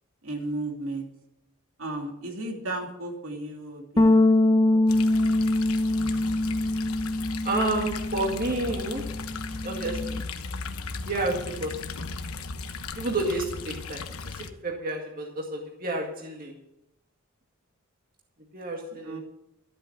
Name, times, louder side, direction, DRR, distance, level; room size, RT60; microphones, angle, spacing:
voice 1, 0.2-1.1 1.8-4.8 19.0-19.2, right 2 dB, 70° right, 2 dB, 2.7 m, -35 dB
Bass guitar, 4.0-10.2, left 2 dB, 20° left, 0.8 m, -24 dB
sound 1, 4.9-14.5, left 4 dB, 85° left, 1.1 m, -37 dB
voice 2, 7.4-9.1 9.6-10.2 11.1-11.9 13.0-14.1 14.4-16.5 18.5-19.2, right 2 dB, 40° right, 0 dB, 2.0 m, -30 dB
13.5 x 8.6 x 7.2 m, 0.84 s
head